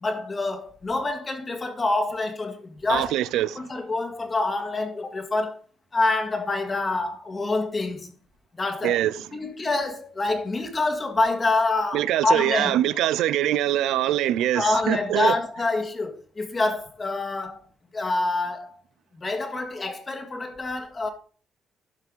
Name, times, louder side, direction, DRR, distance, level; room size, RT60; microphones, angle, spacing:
voice 1, 0.0-3.1 3.7-5.6 5.9-8.1 8.5-9.0 9.3-12.8 14.6-17.7 17.9-18.7 19.1-21.1, left 2 dB, 30° left, 1.8 m, -26 dB
voice 2, 2.9-3.7 8.8-9.3 11.9-15.4, right 13 dB, 90° right, 0.4 m, -23 dB
12.0 x 5.7 x 3.9 m
cardioid pair, 90°, 0 cm